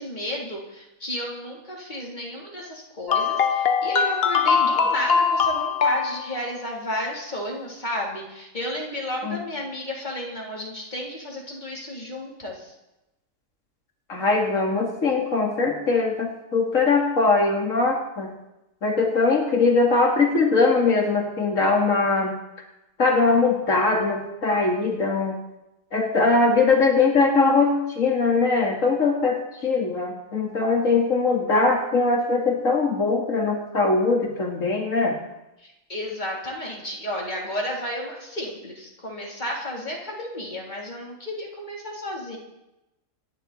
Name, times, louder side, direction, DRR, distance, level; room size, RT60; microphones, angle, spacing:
voice 1, 0.0-12.7 35.6-42.4, equal, 35° left, -3 dB, 4.1 m, -32 dB
sound 1, 3.1-6.3, left 6 dB, 50° left, 1.1 m, -21 dB
voice 2, 14.1-18.3 18.8-22.3 23.0-25.4 25.9-35.2, left 3 dB, 80° left, 0 dB, 2.7 m, -21 dB
26.5 x 11.0 x 4.4 m, 0.93 s
omnidirectional pair, 1.3 m